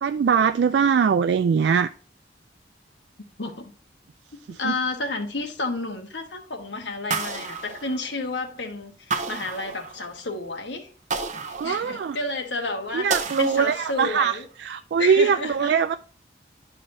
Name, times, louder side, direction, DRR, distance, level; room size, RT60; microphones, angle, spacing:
voice 1, 0.0-1.9 4.5-4.7 11.5-12.2 12.9-15.9, right 6 dB, 75° right, 0.3 m, -22 dB
voice 2, 3.4-3.7 4.6-10.9 11.4-14.5 15.0-15.7, left 3 dB, 85° left, 1.3 m, -31 dB
sound 1, 7.1-8.5 9.1-10.3 11.1-12.3 13.1-14.3, right 4 dB, 40° right, 0.8 m, -31 dB
11.0 x 5.0 x 2.6 m
head